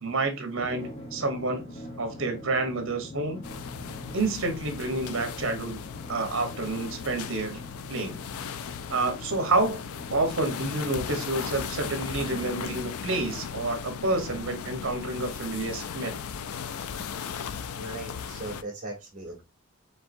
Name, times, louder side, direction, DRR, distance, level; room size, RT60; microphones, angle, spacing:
voice 1, 0.0-1.7 2.0-3.4 4.1-5.8 6.1-7.6 7.9-8.2 8.9-9.8 10.1-16.2, right 2 dB, 60° right, 6 dB, 1.0 m, -29 dB
Drum, 0.6-11.6, left 1 dB, 30° left, 1.0 m, -44 dB
sound 1, 3.4-18.6, left 7 dB, 80° left, 0.4 m, -37 dB
voice 2, 17.7-19.4, right 2 dB, 35° right, -5 dB, 1.4 m, -38 dB
4.6 x 3.4 x 2.6 m, 0.26 s
head